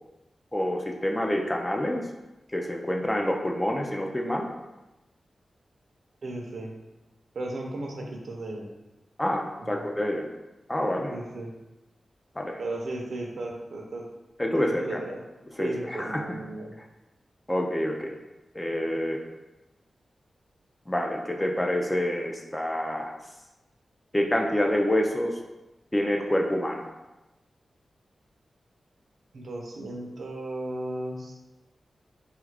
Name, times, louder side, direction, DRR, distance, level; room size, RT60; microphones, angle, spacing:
voice 1, 0.5-2.1 2.5-4.5 9.2-10.3 10.7-11.1 12.4-12.6 14.4-15.0 15.6-16.4 17.5-18.1 18.5-19.2 20.9-23.1 24.1-25.4 25.9-26.9, left 1 dB, 10° left, 1 dB, 0.3 m, -27 dB
voice 2, 6.2-6.7 7.3-8.7 9.6-9.8 11.1-11.5 12.6-14.1 14.5-15.2 15.6-16.8 29.3-31.3, right 2 dB, 65° right, 0 dB, 0.6 m, -35 dB
3.5 x 2.4 x 3.2 m, 1.0 s
wide cardioid pair, 150°, 0 cm